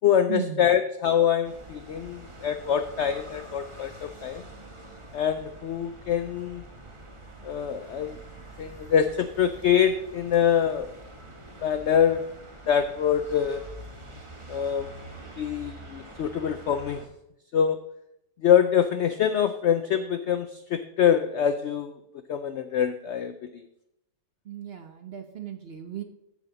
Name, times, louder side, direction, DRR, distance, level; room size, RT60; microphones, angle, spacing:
voice 1, 0.0-4.4 5.1-6.6 7.4-8.2 8.6-10.9 11.6-12.2 12.7-13.6 14.5-14.9 15.4-17.0 17.5-17.8 18.4-21.9 22.3-23.5, left 8 dB, 75° left, 10 dB, 0.6 m, -24 dB
sound 1, 1.4-17.1, right 2 dB, 20° right, 1.1 m, -45 dB
voice 2, 24.5-26.0, right 11 dB, 50° right, 6 dB, 0.8 m, -35 dB
14.0 x 6.2 x 3.9 m, 0.84 s
omnidirectional pair, 1.7 m